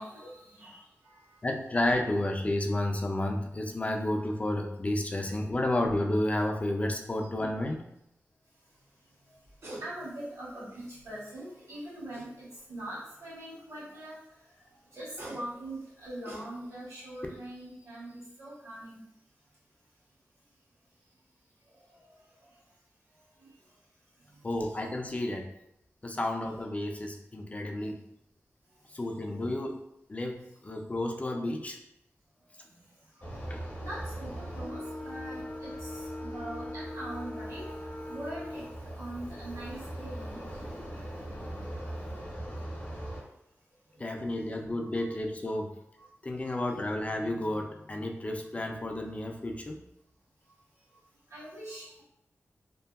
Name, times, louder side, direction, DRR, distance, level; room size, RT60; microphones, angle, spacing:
voice 1, 0.0-1.3 5.2-5.3 7.1-7.3 9.8-14.2 14.9-19.0 21.9-22.0 23.4-23.5 24.3-24.7 29.3-29.5 33.8-40.7 44.4-44.5 45.0-45.1 46.0-46.1 46.4-46.5 51.3-52.0, right 1 dB, 80° right, -9 dB, 1.2 m, -43 dB
voice 2, 1.4-7.9 24.4-25.5 26.0-28.0 28.9-29.8 30.1-31.8 33.5-33.6 44.0-45.7 46.2-49.8, left 1 dB, 30° left, 3 dB, 0.4 m, -31 dB
sound 1, 9.3-9.9 10.3-11.1 12.1-12.8 14.9-16.9 17.3-17.6, right 1 dB, 60° right, 0.6 m, -46 dB
sound 2, 33.2-43.2, equal, 45° left, 0.8 m, -39 dB
2.7 x 2.2 x 2.3 m, 0.81 s
wide cardioid pair, 75°, 5 cm